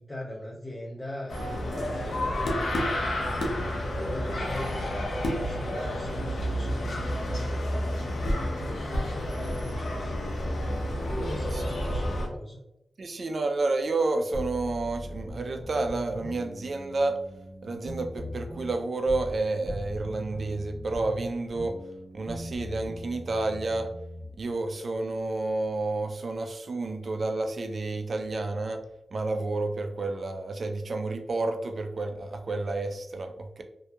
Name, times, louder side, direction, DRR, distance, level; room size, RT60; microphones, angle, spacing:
voice 1, 0.0-2.1 2.9-4.7 5.1-7.3 8.8-12.6, left 1 dB, 25° left, -4 dB, 0.6 m, -42 dB
sound 1, 1.3-12.3, left 1 dB, 85° left, 0.6 m, -30 dB
voice 2, 13.0-17.2 17.6-21.8 22.1-23.9 24.4-28.8 29.1-33.6, right 2 dB, 60° right, 6 dB, 0.4 m, -30 dB
sound 2, 14.3-19.4 19.6-24.4, equal, 20° right, 0.7 m, -40 dB
2.7 x 2.2 x 2.2 m, 0.83 s
cardioid pair, 55°, 0 cm